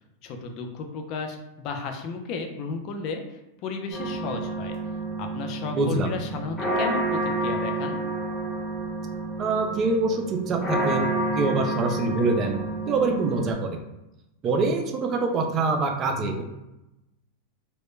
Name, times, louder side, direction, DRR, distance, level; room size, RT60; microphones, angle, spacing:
voice 1, 0.2-3.2 3.6-4.8 5.2-8.0, left 4 dB, 45° left, 4 dB, 0.4 m, -33 dB
sound 1, 3.9-13.5, right 2 dB, 20° left, 0.9 m, -29 dB
voice 2, 5.7-6.1 9.4-13.8 14.4-16.4, right 3 dB, 30° right, 3 dB, 0.4 m, -25 dB
2.1 x 2.0 x 3.1 m, 0.94 s
supercardioid pair, 125°, 0 cm